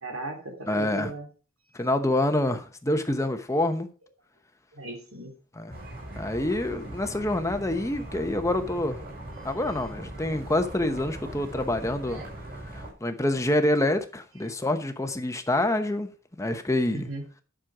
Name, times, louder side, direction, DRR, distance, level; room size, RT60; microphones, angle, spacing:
voice 1, 0.0-1.3 4.7-5.3 16.9-17.2, right 2 dB, 85° right, 2.9 m, -37 dB
voice 2, 0.7-1.1 1.7-3.9 5.6-5.8 6.1-9.0 9.4-12.2 12.7-16.1 16.4-17.1, left 1 dB, 15° left, 0.9 m, -26 dB
sound 1, 5.7-12.9, right 1 dB, 45° right, 5.1 m, -40 dB
10.5 x 6.3 x 4.9 m
head